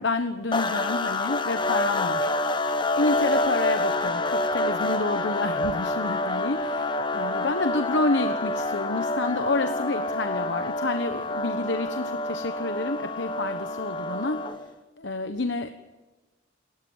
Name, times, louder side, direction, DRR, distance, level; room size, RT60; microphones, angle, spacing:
voice 1, 0.0-2.3 2.7-14.7 15.0-15.7, left 2 dB, 60° left, 8 dB, 1.2 m, -29 dB
sound 1, 0.5-14.7, left 2 dB, 25° left, 1.3 m, -27 dB
28.0 x 13.5 x 8.8 m, 1.2 s
head